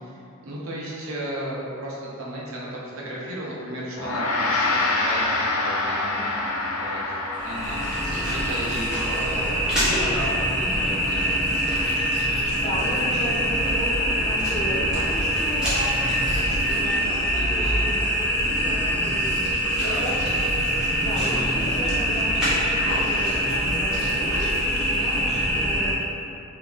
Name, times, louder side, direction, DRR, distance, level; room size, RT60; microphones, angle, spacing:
voice 1, 0.0-6.1 6.6-7.1 7.4-7.9 8.1-11.7 17.3-17.9 19.6-20.1, right 1 dB, 75° right, -5 dB, 0.8 m, -35 dB
Gong, 4.0-13.5, left 2 dB, 80° left, 0.4 m, -29 dB
voice 2, 5.8-6.5 8.7-8.8 12.4-18.0 18.3-26.0, equal, 30° left, -7 dB, 0.8 m, -35 dB
sound 1, 7.3-25.9, equal, 5° right, 0.9 m, -24 dB
3.4 x 2.9 x 3.7 m, 2.7 s
head